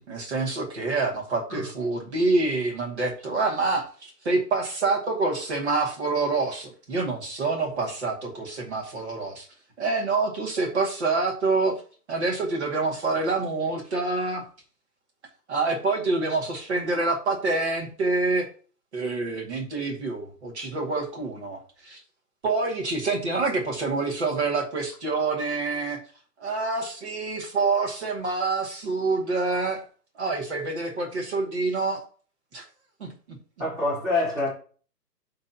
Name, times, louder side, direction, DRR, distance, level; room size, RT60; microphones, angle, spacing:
voice 1, 0.0-9.5 9.8-11.8 12.1-14.5 15.5-18.5 18.9-22.0 22.4-26.0 26.4-29.8 30.2-32.0 32.5-32.7 33.0-33.4, right 3 dB, 45° right, 2.3 m, -27 dB
voice 2, 33.6-34.5, left 2 dB, 15° right, 3.3 m, -26 dB
11.0 x 3.9 x 2.9 m
hypercardioid pair, 170°, 48 cm